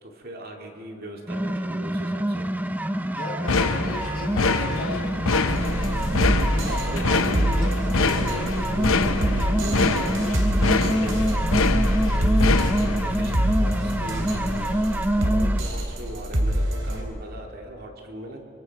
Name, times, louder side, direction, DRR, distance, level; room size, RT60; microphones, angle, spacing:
voice 1, 0.0-2.5 6.6-11.6 12.0-18.4, right 1 dB, 50° right, 1 dB, 2.3 m, -38 dB
sound 1, 1.3-15.6, right 1 dB, 10° right, 0.5 m, -27 dB
voice 2, 3.0-5.5, left 2 dB, 45° left, -3 dB, 6.1 m, -36 dB
sound 2, 3.5-14.8, left 3 dB, 80° left, 0.9 m, -26 dB
sound 3, 5.5-17.0, equal, 70° right, 3.2 m, -25 dB
26.0 x 23.5 x 4.6 m, 2.6 s
head